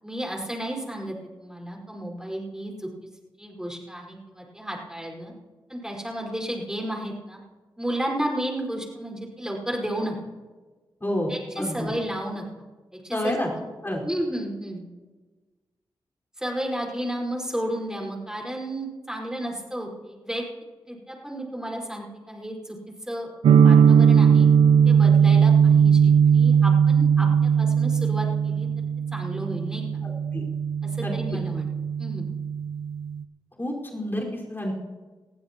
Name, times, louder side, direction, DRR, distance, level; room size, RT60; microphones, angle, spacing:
voice 1, 0.0-2.9 3.4-5.3 5.7-7.4 7.8-10.1 11.3-12.4 12.9-13.7 14.0-14.8 16.4-20.4 20.9-22.8 23.1-23.3 23.6-24.5 24.8-28.7 29.1-29.8 31.0-31.7 32.0-32.2, right 1 dB, 5° right, -1 dB, 5.1 m, -32 dB
voice 2, 11.0-11.9 13.1-13.5 13.8-14.0 30.0-30.5 31.0-31.1 33.6-34.7, left 1 dB, 25° left, -1 dB, 5.0 m, -29 dB
sound 1, 23.4-33.2, right 7 dB, 85° right, 0.6 m, -19 dB
21.0 x 15.0 x 3.0 m, 1.3 s
supercardioid pair, 40°, 9 cm